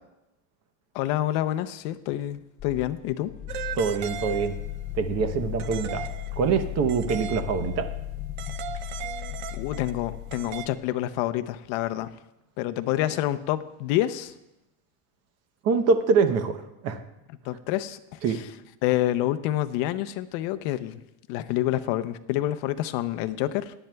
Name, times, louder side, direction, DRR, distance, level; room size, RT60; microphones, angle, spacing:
voice 1, 0.9-3.3 9.5-12.1 12.6-14.3 17.4-18.4 18.8-21.0 21.3-23.7, left 14 dB, 55° left, 11 dB, 0.7 m, -28 dB
sound 1, 2.6-10.8, left 14 dB, 20° left, 0.3 m, -36 dB
sound 2, 3.5-4.8 5.6-7.8 8.4-10.7, right 10 dB, 70° right, 0.7 m, -37 dB
voice 2, 3.8-4.6 4.9-6.0 6.4-7.9 15.6-16.6 16.8-17.0 18.2-18.4, right 5 dB, 35° right, 9 dB, 0.8 m, -24 dB
18.0 x 11.0 x 2.3 m, 0.90 s
cardioid pair, 165°, 42 cm